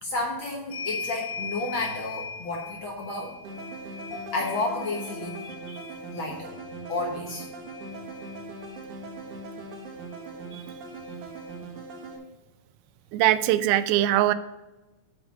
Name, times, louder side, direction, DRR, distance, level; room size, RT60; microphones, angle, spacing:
voice 1, 0.0-3.4 4.3-5.5 6.1-6.5 6.9-7.4, left 2 dB, 80° left, -1 dB, 1.1 m, -31 dB
sound 1, 0.7-8.8 10.1-10.2 10.5-11.5, left 5 dB, 65° left, 1.2 m, -40 dB
sound 2, 3.4-12.2, right 2 dB, 60° right, 2.4 m, -40 dB
sound 3, 4.1-7.8 8.1-8.2, left 5 dB, ahead, 1.2 m, -46 dB
voice 2, 13.1-14.3, right 13 dB, 90° right, 13 dB, 2.5 m, -21 dB
6.6 x 6.0 x 6.4 m, 1.0 s
omnidirectional pair, 4.3 m